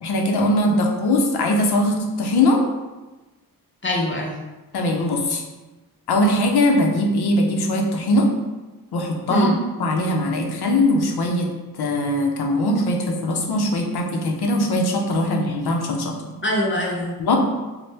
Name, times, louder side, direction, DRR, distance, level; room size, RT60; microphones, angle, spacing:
voice 1, 0.0-2.6 4.7-5.4 6.1-8.3 8.9-9.5 9.8-11.5 11.8-16.2 17.2-17.4, left 1 dB, 80° left, 2 dB, 0.7 m, -20 dB
voice 2, 3.8-4.4 9.3-9.6 16.4-17.4, left 1 dB, 30° left, -1 dB, 0.4 m, -24 dB
4.1 x 2.1 x 3.3 m, 1.1 s
wide cardioid pair, 120°, 39 cm